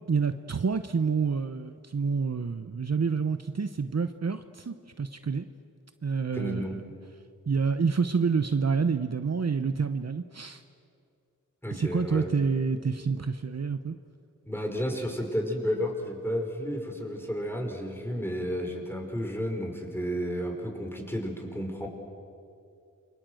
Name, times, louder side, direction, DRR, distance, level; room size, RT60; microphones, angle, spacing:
voice 1, 0.1-5.5 6.0-6.8 7.5-10.6 11.7-14.0, right 5 dB, 50° right, 10 dB, 0.9 m, -28 dB
voice 2, 6.3-6.8 11.6-12.3 14.4-21.9, equal, 5° left, 2 dB, 4.9 m, -32 dB
28.5 x 24.0 x 7.8 m, 2.5 s
wide cardioid pair, 65°, 33 cm